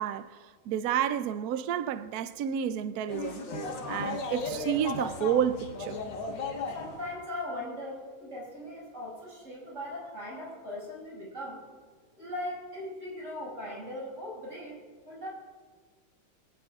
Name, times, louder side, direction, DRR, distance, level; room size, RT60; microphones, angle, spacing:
voice 1, 0.0-3.4 3.9-6.0, right 9 dB, 80° right, 0.8 m, -30 dB
sound 1, 3.1-7.2, left 3 dB, 65° left, 2.1 m, -36 dB
voice 2, 6.7-11.6 12.2-14.8 15.0-15.3, left 1 dB, 35° right, 6.6 m, -39 dB
26.0 x 19.0 x 2.4 m
omnidirectional pair, 2.2 m